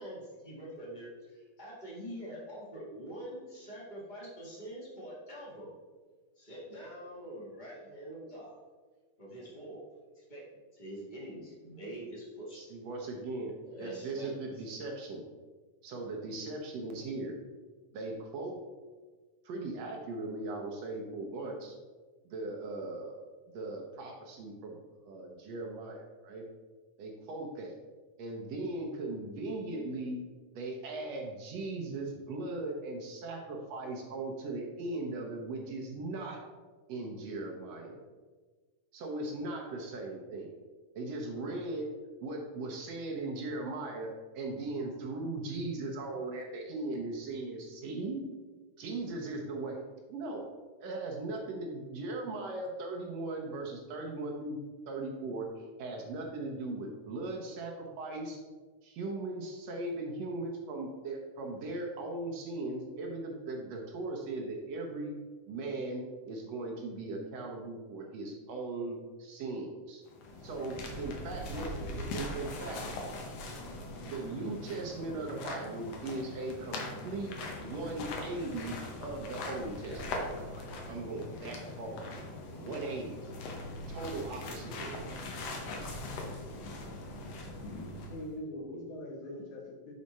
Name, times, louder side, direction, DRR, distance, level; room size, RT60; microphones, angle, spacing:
voice 1, 0.0-5.7 6.4-8.6 9.2-9.8 10.1-12.6 13.6-14.6, right 1 dB, 25° left, -5 dB, 1.0 m, -45 dB
voice 2, 12.5-15.2 15.8-17.4 17.9-18.6 19.5-21.8 22.3-23.2 23.5-26.5 27.0-27.7 28.2-30.2 30.6-36.4 36.9-38.0 38.9-40.5 41.0-41.9 42.2-44.1 44.4-48.2 48.8-49.8 50.1-50.5 50.8-54.6 54.9-58.4 58.8-65.1 65.5-70.0 70.4-71.7 72.0-72.9 74.0-77.3 77.6-82.1 82.6-83.1 83.9-85.2, right 2 dB, 70° right, 1 dB, 1.8 m, -38 dB
sound 1, 70.1-88.3, left 2 dB, 65° left, 1.9 m, -41 dB
voice 3, 71.7-72.3 87.6-89.9, left 1 dB, 85° left, 0 dB, 2.6 m, -43 dB
6.3 x 4.8 x 4.1 m, 1.4 s
omnidirectional pair, 3.4 m